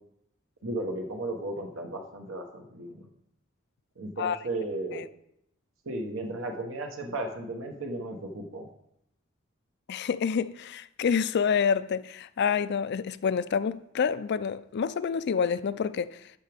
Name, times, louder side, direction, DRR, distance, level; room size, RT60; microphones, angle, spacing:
voice 1, 0.6-3.1 4.0-5.0 5.8-8.7, right 2 dB, 75° right, 1.0 m, -35 dB
voice 2, 9.9-16.3, left 6 dB, 55° left, 0.4 m, -28 dB
12.0 x 5.9 x 3.5 m
head